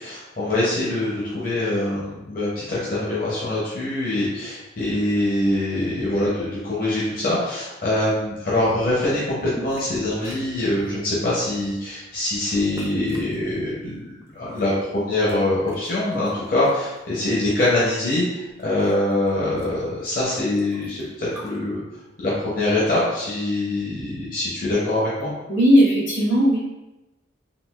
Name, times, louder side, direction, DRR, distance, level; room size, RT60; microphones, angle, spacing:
voice 1, 0.0-14.1 14.3-21.8 22.2-25.3, left 1 dB, 45° left, -8 dB, 0.7 m, -24 dB
sound 1, 9.5-10.0 10.2-11.1 11.6-11.8 12.8-13.3 14.2-15.4 15.6-16.8 17.2-17.9 18.2-18.3 18.5-21.6, right 1 dB, 15° right, 0.3 m, -41 dB
voice 2, 25.5-26.6, equal, 85° left, -7 dB, 1.5 m, -16 dB
3.8 x 2.4 x 2.3 m, 0.99 s
head